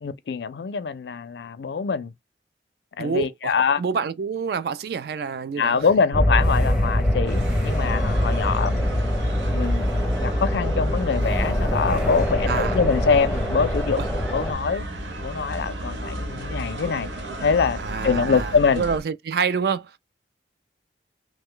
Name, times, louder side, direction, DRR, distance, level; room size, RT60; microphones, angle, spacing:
voice 1, 0.0-2.1 3.0-3.8 5.6-9.0 9.5-9.9 10.2-14.0 14.3-14.8 15.2-17.1 17.4-18.9, left 5 dB, 70° left, 0.4 m, -24 dB
voice 2, 3.0-5.8 12.5-12.8 14.0-14.1 17.8-19.9, right 6 dB, 60° right, 0.3 m, -27 dB
sound 1, 6.1-14.5, left 1 dB, 5° right, 0.6 m, -23 dB
sound 2, 7.3-19.0, right 1 dB, 85° right, 0.8 m, -33 dB
3.0 x 2.2 x 3.6 m
head